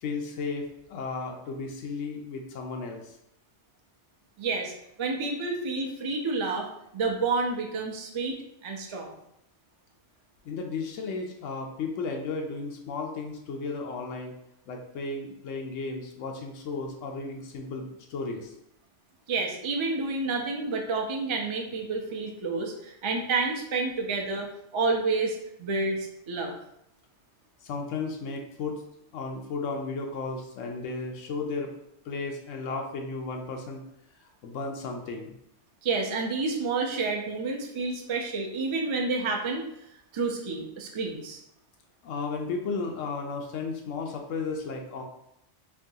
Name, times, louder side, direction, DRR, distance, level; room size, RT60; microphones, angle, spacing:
voice 1, 0.0-3.1 10.4-14.3 14.7-18.5 27.6-28.8 29.1-31.7 32.0-33.8 34.4-35.3 42.0-45.0, left 4 dB, 90° left, 2 dB, 1.0 m, -34 dB
voice 2, 4.4-4.7 5.0-6.7 6.9-8.4 8.6-9.1 19.3-26.5 35.8-39.6 40.1-41.4, right 3 dB, 40° right, 1 dB, 0.4 m, -29 dB
4.5 x 3.0 x 2.7 m, 0.79 s
omnidirectional pair, 1.3 m